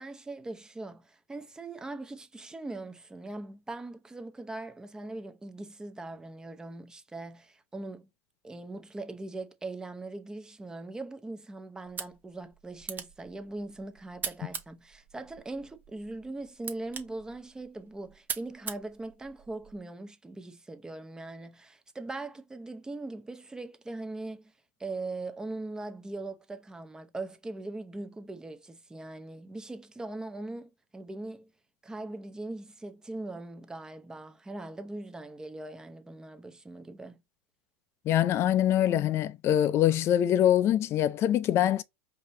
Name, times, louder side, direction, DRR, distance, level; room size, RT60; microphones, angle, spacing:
voice 1, 0.0-8.1 8.4-24.5 24.8-31.5 31.8-37.2, right 2 dB, 10° right, 0.7 m, -40 dB
sound 1, 11.8-19.8, right 6 dB, 25° right, 1.0 m, -43 dB
voice 2, 38.1-41.8, left 11 dB, 40° left, 0.5 m, -24 dB
4.9 x 2.9 x 2.6 m
hypercardioid pair, 115°, 7 cm